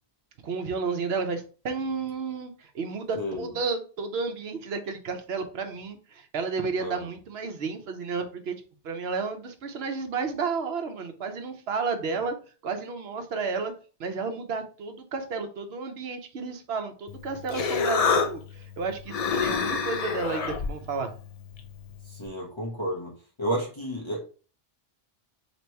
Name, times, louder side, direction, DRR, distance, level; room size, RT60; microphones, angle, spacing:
voice 1, 0.4-12.4 12.6-13.7 14.0-21.1, right 4 dB, 65° right, 7 dB, 0.9 m, -32 dB
Human voice, 17.1-22.3, left 5 dB, 70° left, 0.3 m, -29 dB
voice 2, 22.1-23.1 23.4-24.2, equal, 25° left, -2 dB, 0.8 m, -31 dB
3.0 x 2.9 x 4.4 m, 0.37 s
omnidirectional pair, 1.2 m